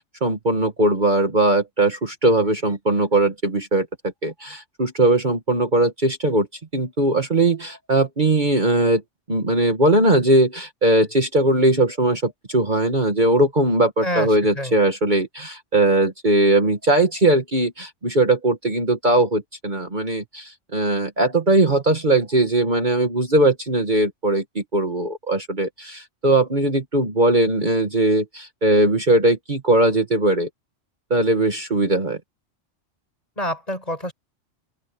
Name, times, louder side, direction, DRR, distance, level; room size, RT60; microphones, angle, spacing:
voice 1, 0.2-3.9 4.2-6.5 6.7-9.0 9.3-30.5 31.1-32.2, right 2 dB, 40° right, 2.0 m, -19 dB
voice 2, 33.4-34.1, equal, 30° left, 7.2 m, -26 dB
open air
omnidirectional pair, 1.3 m